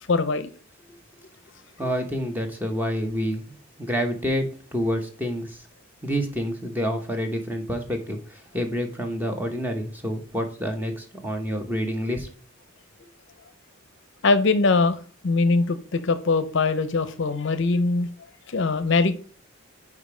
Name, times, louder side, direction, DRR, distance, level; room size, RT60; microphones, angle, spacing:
voice 1, 0.1-0.5 14.2-18.1 18.5-19.2, left 3 dB, 55° left, 0.6 m, -22 dB
voice 2, 1.8-5.6 6.0-12.3, equal, 10° right, 0.8 m, -28 dB
5.1 x 4.8 x 4.9 m
head